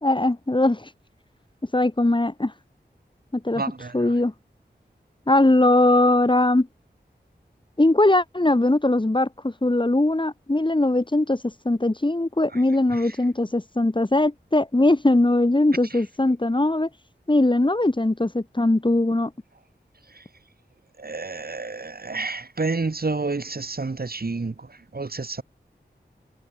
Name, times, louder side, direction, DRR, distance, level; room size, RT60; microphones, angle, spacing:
voice 1, 0.0-0.9 1.7-2.5 3.3-3.6 3.9-4.3 5.3-6.7 7.8-16.9 17.3-19.3, left 2 dB, 25° left, 2.3 m, -20 dB
voice 2, 3.5-4.1 12.9-13.0 21.0-24.7 24.9-25.4, right 3 dB, 55° right, 2.6 m, -29 dB
wide cardioid pair, 75°, 18 cm